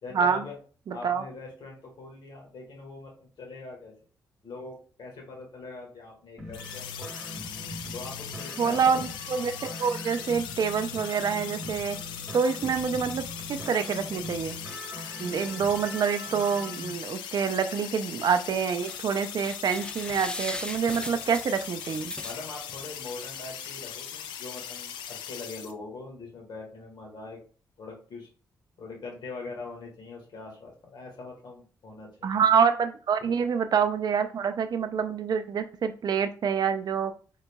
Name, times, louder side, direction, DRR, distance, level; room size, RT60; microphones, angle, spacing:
voice 1, 0.0-0.6 0.9-3.9 4.4-7.2 7.9-9.0 22.2-27.4 27.8-28.3 28.8-32.4 33.2-33.3, left 3 dB, 65° left, 0 dB, 1.7 m, -42 dB
voice 2, 0.9-1.2 8.6-12.0 12.3-13.2 13.5-14.6 15.2-22.1 32.2-37.1, right 6 dB, 60° right, 9 dB, 0.4 m, -26 dB
sound 1, 6.4-16.9, equal, 10° right, 1.2 m, -41 dB
sound 2, 6.5-25.7, left 9 dB, 90° left, 0.4 m, -39 dB
sound 3, 18.5-19.0 19.4-22.8 23.2-23.3 23.6-23.7, left 1 dB, 10° left, 0.4 m, -38 dB
4.0 x 3.7 x 2.2 m, 0.39 s
supercardioid pair, 55°, 8 cm